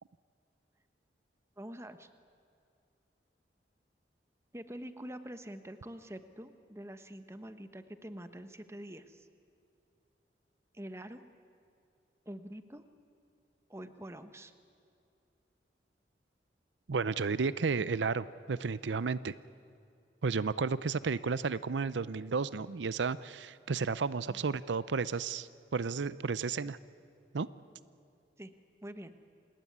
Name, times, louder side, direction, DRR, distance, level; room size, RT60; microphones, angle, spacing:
voice 1, 1.6-2.1 4.5-9.3 10.7-11.2 12.3-12.8 13.7-14.5 24.3-24.4 28.4-28.5 28.8-29.1, right 1 dB, 15° right, 10 dB, 1.1 m, -45 dB
voice 2, 16.9-19.3 20.2-26.8 27.3-27.5, right 4 dB, 85° right, 17 dB, 0.6 m, -32 dB
27.5 x 20.0 x 9.5 m, 2.5 s
head